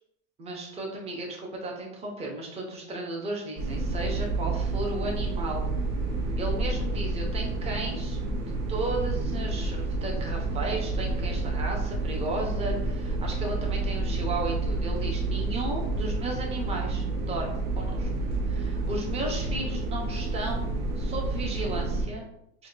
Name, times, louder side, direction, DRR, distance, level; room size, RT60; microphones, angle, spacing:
voice 1, 0.4-5.7 6.4-8.2 8.7-18.1 18.5-22.2, right 2 dB, 20° right, -1 dB, 0.7 m, -34 dB
sound 1, 3.6-22.1, right 2 dB, 55° right, 0.8 m, -29 dB
2.8 x 2.2 x 3.9 m, 0.77 s
supercardioid pair, 135°, 31 cm